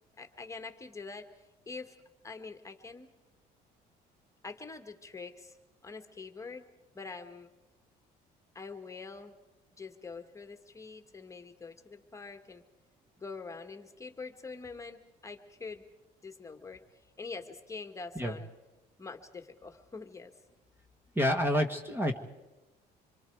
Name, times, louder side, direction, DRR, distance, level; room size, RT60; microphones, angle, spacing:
voice 1, 0.2-1.3 1.6-2.0 2.2-3.1 4.4-5.6 5.8-6.7 6.9-7.5 8.5-9.3 9.8-12.6 13.2-15.8 16.2-18.5 19.0-20.3 21.7-21.8, left 4 dB, 20° left, 5 dB, 1.8 m, -45 dB
voice 2, 21.1-22.2, equal, 15° right, 5 dB, 1.6 m, -28 dB
27.0 x 23.5 x 4.8 m, 1.0 s
cardioid pair, 110°, 17 cm